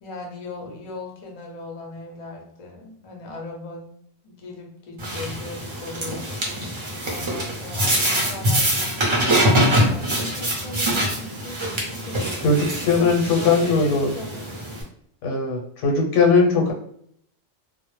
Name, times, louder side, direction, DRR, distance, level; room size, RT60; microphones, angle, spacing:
voice 1, 0.0-3.9 4.2-6.3 7.0-14.7, left 2 dB, 45° left, 0 dB, 0.5 m, -38 dB
sound 1, 5.0-14.8, equal, 50° right, 0.3 m, -24 dB
voice 2, 12.4-14.1 15.2-16.7, left 4 dB, 90° left, 0 dB, 0.9 m, -19 dB
2.0 x 2.0 x 3.0 m, 0.67 s
omnidirectional pair, 1.3 m